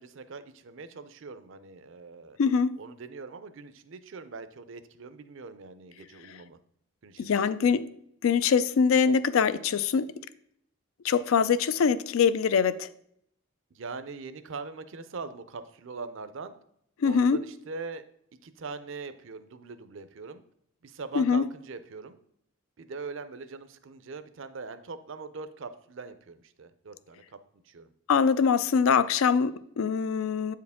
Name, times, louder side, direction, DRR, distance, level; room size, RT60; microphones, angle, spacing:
voice 1, 0.0-2.4 2.8-6.6 7.0-7.8 13.7-16.5 17.0-18.0 18.4-20.4 20.8-22.2 22.8-27.2 27.6-27.9, right 4 dB, 60° right, 0.5 m, -42 dB
voice 2, 2.4-2.8 7.2-7.9 8.2-10.1 11.0-12.9 17.0-17.4 21.1-21.4 28.1-30.5, left 6 dB, 75° left, 0.4 m, -23 dB
8.4 x 4.7 x 3.5 m
head